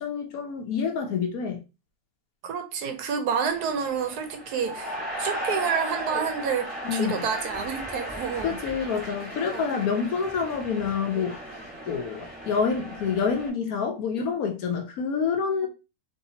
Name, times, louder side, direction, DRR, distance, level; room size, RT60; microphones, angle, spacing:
voice 1, 0.0-1.6 6.8-7.2 8.4-11.5 11.9-15.7, left 6 dB, 70° left, 1.1 m, -27 dB
voice 2, 2.4-8.6 9.5-9.6, right 6 dB, 85° right, 1.3 m, -29 dB
sound 1, 3.5-13.5, right 1 dB, 5° right, 1.4 m, -36 dB
4.1 x 3.3 x 2.8 m
omnidirectional pair, 1.6 m